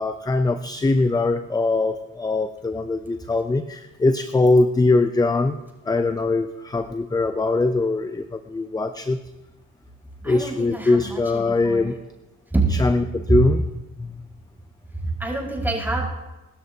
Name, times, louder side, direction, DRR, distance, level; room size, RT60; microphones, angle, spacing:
voice 1, 0.0-5.6 5.8-9.2 10.2-11.9 12.7-13.6 14.0-14.1, left 3 dB, 15° left, 9 dB, 0.6 m, -22 dB
voice 2, 10.2-11.9 12.5-12.8 13.3-13.4 14.9-16.1, right 3 dB, 5° right, -2 dB, 5.2 m, -25 dB
24.5 x 13.0 x 2.8 m, 1.1 s
cardioid pair, 90°, 30 cm